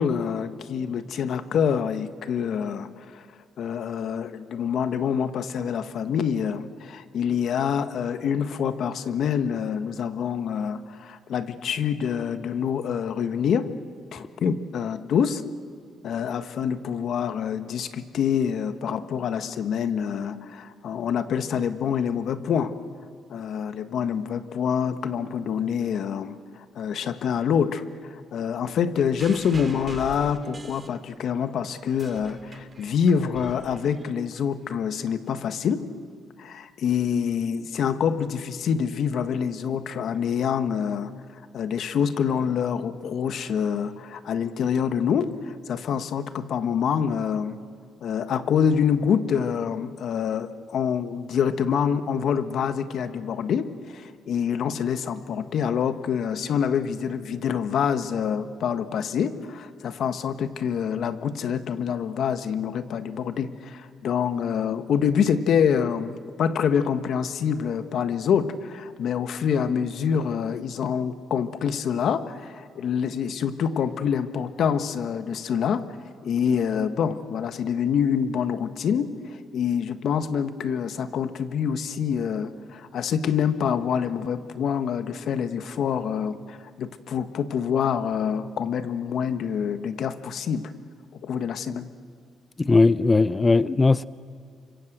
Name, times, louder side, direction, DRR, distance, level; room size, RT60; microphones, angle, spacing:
voice 1, 0.0-3.3 3.6-13.7 14.1-15.4 16.0-22.7 23.3-35.8 36.4-41.1 41.5-47.6 48.0-75.8 76.2-90.7 91.1-91.9, left 7 dB, 70° left, 10 dB, 1.4 m, -26 dB
sound 1, 29.2-31.4 31.8-34.4 35.3-35.4, right 3 dB, 30° right, 2.6 m, -44 dB
voice 2, 92.6-94.0, left 3 dB, 25° left, 16 dB, 0.6 m, -18 dB
29.0 x 25.5 x 7.9 m, 2.1 s
cardioid pair, 90°, 0 cm